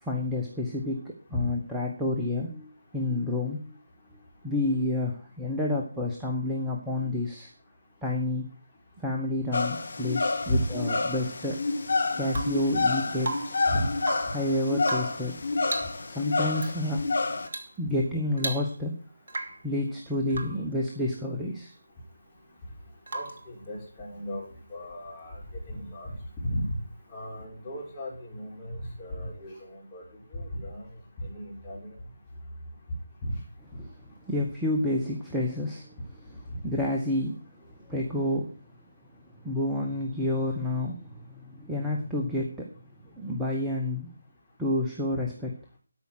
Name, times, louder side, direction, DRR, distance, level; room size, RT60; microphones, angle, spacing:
voice 1, 0.0-3.8 4.1-7.5 8.0-8.5 9.0-11.6 12.2-13.4 14.3-15.4 16.1-17.0 17.8-19.0 19.6-21.7 33.8-33.9 34.2-36.0 36.6-38.5 39.4-42.7 43.0-44.1 44.6-45.5, left 1 dB, 5° right, -3 dB, 1.2 m, -29 dB
sound 1, 9.5-17.5, left 3 dB, 55° left, 1.6 m, -29 dB
Rain / Water tap faucet / Drip, 12.3-12.7 13.2-13.7 14.0-14.4 14.8-15.3 15.6-16.0 16.6-16.8 17.5-17.8 18.0-18.1 18.4-18.9 19.3-19.7 20.3-20.6 23.1-23.5 25.4-25.5, right 2 dB, 45° right, 2.2 m, -36 dB
voice 2, 23.1-24.4 24.7-25.4 25.7-26.2 26.4-26.7 27.1-30.0 30.3-30.8 31.2-31.9 33.2-33.3, equal, 15° left, -6 dB, 4.3 m, -34 dB
13.0 x 5.7 x 6.3 m, 0.41 s
figure-of-eight pair, 155°, 0 cm